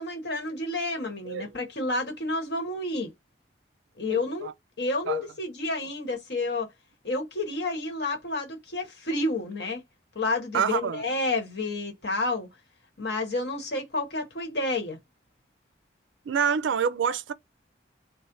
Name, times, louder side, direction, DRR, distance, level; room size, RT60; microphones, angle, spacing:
voice 1, 0.0-3.1 4.0-4.5 4.8-6.7 7.0-9.8 10.1-12.5 13.0-15.0, left 2 dB, 60° left, 1.3 m, -30 dB
voice 2, 4.1-4.5 5.1-5.2 10.5-11.0 16.3-17.3, right 7 dB, 85° right, 0.4 m, -27 dB
3.1 x 2.1 x 3.9 m
head